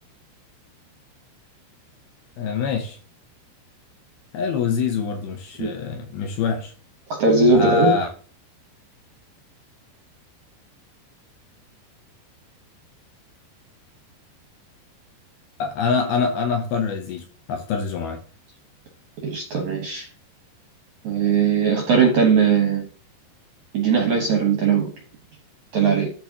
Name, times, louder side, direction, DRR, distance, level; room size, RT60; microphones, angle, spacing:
voice 1, 2.4-3.0 4.3-6.7 7.5-8.1 15.6-18.2, left 5 dB, 75° left, 2.3 m, -25 dB
voice 2, 7.1-7.9 19.2-20.1 21.0-22.8 23.7-24.9 25.7-26.1, right 5 dB, 70° right, 1.8 m, -19 dB
12.5 x 4.5 x 2.9 m
omnidirectional pair, 5.1 m